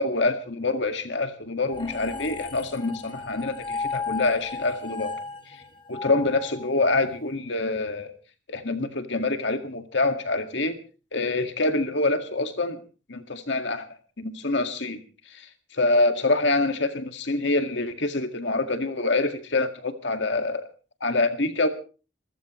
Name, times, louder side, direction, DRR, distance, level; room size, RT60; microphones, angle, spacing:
voice 1, 0.0-5.1 5.9-8.1 8.5-10.8 11.1-12.8 13.1-13.9 14.2-15.0 15.3-20.7 21.0-21.7, left 2 dB, 65° left, 6 dB, 2.0 m, -26 dB
sound 1, 1.7-7.1, left 4 dB, 25° left, 2.1 m, -35 dB
27.5 x 14.5 x 3.1 m, 0.36 s
head